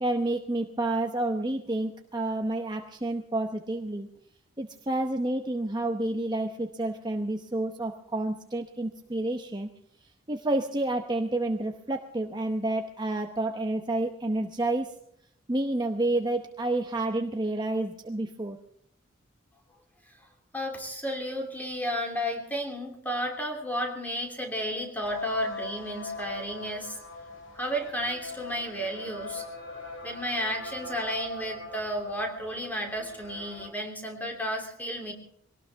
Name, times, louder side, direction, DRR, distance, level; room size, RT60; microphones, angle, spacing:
voice 1, 0.0-4.1 4.6-9.7 10.3-14.9 15.5-18.6, right 2 dB, 20° right, 4 dB, 0.8 m, -29 dB
voice 2, 20.5-27.0 27.5-29.4 30.0-35.1, equal, 10° left, 2 dB, 3.0 m, -32 dB
sound 1, 25.0-33.7, left 2 dB, 65° left, 2.4 m, -41 dB
22.5 x 18.0 x 3.5 m, 0.69 s
head